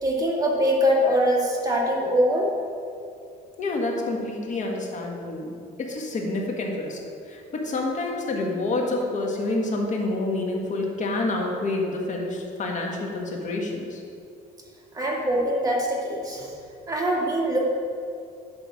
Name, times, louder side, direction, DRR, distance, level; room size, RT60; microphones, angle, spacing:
voice 1, 0.0-2.5 14.9-16.5 16.9-17.7, equal, 20° right, -3 dB, 1.9 m, -23 dB
voice 2, 3.6-7.0 7.2-14.0, left 2 dB, 45° left, 0 dB, 1.6 m, -28 dB
10.5 x 3.8 x 6.3 m, 2.5 s
cardioid pair, 110°, 17 cm